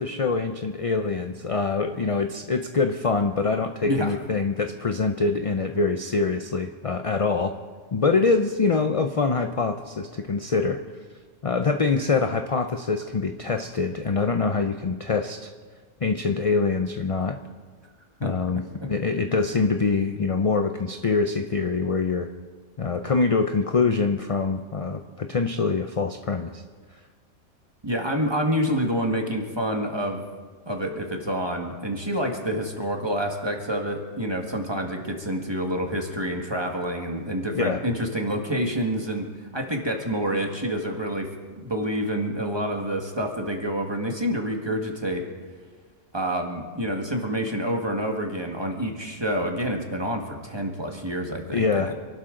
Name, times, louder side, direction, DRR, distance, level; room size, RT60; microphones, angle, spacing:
voice 1, 0.0-7.5 7.9-10.8 11.4-15.5 16.0-17.4 18.2-22.3 22.8-26.6 37.5-37.8 51.5-51.9, left 4 dB, 40° left, 6 dB, 0.5 m, -24 dB
voice 2, 3.8-4.1 18.2-18.3 27.8-30.2 30.6-39.3 39.5-41.3 41.6-45.2 46.1-51.9, equal, 20° right, 2 dB, 1.7 m, -28 dB
27.0 x 12.5 x 3.8 m, 1.5 s
omnidirectional pair, 1.3 m